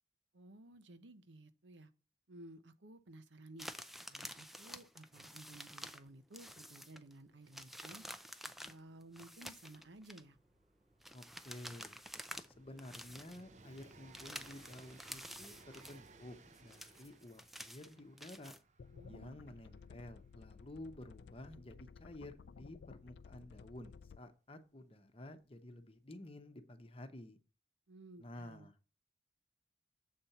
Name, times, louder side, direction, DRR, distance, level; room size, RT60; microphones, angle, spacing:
voice 1, 0.3-1.9 2.3-3.7 4.1-8.0 8.6-10.4 18.9-19.4 27.9-28.7, right 1 dB, 80° right, 0.8 m, -56 dB
sound 1, 3.6-6.1 6.3-7.1 7.5-10.2 11.0-12.5 12.8-13.4 13.8-16.1 16.5-18.6, equal, ahead, 0.4 m, -50 dB
Train, 7.3-7.4 7.6-24.2 25.2-25.3, right 3 dB, 40° right, 0.6 m, -64 dB
voice 2, 11.1-12.0 12.6-18.5 19.1-27.4 28.2-28.9, left 1 dB, 30° left, 0.8 m, -52 dB
sound 2, 18.8-24.2, left 5 dB, 70° left, 0.4 m, -56 dB
7.4 x 4.3 x 6.7 m
head